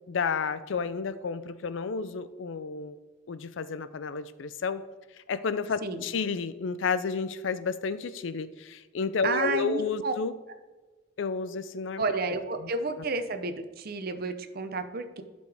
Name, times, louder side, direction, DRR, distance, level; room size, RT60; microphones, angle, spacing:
voice 1, 0.1-3.0 3.3-4.8 5.3-10.3 11.2-12.0 12.6-12.7, left 5 dB, 70° left, 14 dB, 0.4 m, -31 dB
voice 2, 9.2-10.1 12.0-15.2, right 3 dB, 50° right, 9 dB, 0.7 m, -31 dB
11.5 x 5.2 x 3.4 m, 1.3 s
head